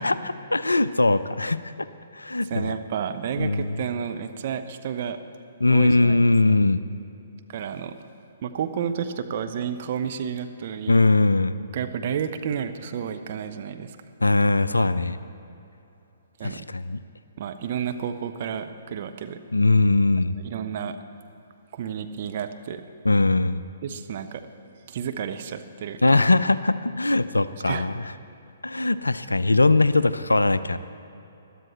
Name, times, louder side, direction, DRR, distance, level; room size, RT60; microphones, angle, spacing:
voice 1, 0.0-1.9 2.1-2.7 3.4-3.9 5.6-6.8 10.9-11.6 14.2-15.2 16.4-17.0 19.5-20.4 23.0-23.6 26.0-28.1 28.6-30.8, left 2 dB, 75° left, 14 dB, 0.4 m, -21 dB
voice 2, 2.5-5.2 5.7-6.2 7.5-8.0 8.4-11.0 11.7-14.0 16.4-16.7 17.4-19.4 20.4-21.0 21.7-22.8 23.8-24.4 24.9-26.3 27.7-27.9, right 8 dB, 40° right, 8 dB, 0.7 m, -31 dB
21.0 x 12.5 x 3.1 m, 2.9 s
figure-of-eight pair, 125°, 0 cm